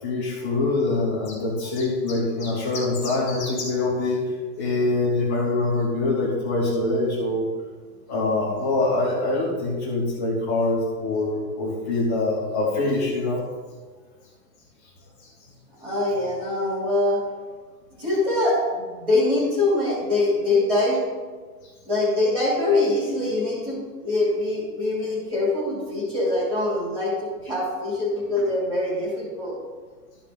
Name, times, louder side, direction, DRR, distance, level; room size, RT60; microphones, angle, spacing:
voice 1, 0.0-4.2 4.6-7.5 8.1-13.4 15.2-15.3, left 2 dB, 10° left, -9 dB, 0.5 m, -24 dB
voice 2, 15.8-17.2 18.0-21.0 21.8-29.5, left 2 dB, 10° right, -6 dB, 2.8 m, -23 dB
12.5 x 5.0 x 5.4 m, 1.4 s
hypercardioid pair, 170°, 47 cm